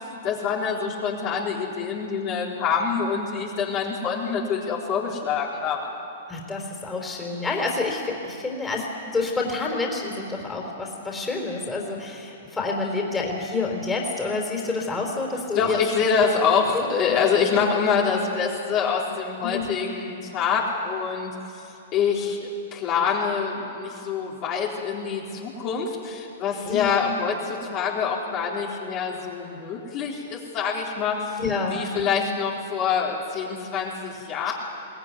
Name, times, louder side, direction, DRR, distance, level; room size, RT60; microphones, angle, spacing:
voice 1, 0.1-5.9 15.5-31.4 31.7-34.5, left 6 dB, 40° left, -3 dB, 3.7 m, -26 dB
voice 2, 6.3-8.8 9.1-15.8 16.7-17.2 17.5-17.7 19.4-19.8 26.6-26.9 31.4-32.2 34.5-34.6, left 3 dB, 10° left, 0 dB, 4.2 m, -28 dB
23.0 x 18.0 x 9.7 m, 2.8 s
hypercardioid pair, 115°, 0 cm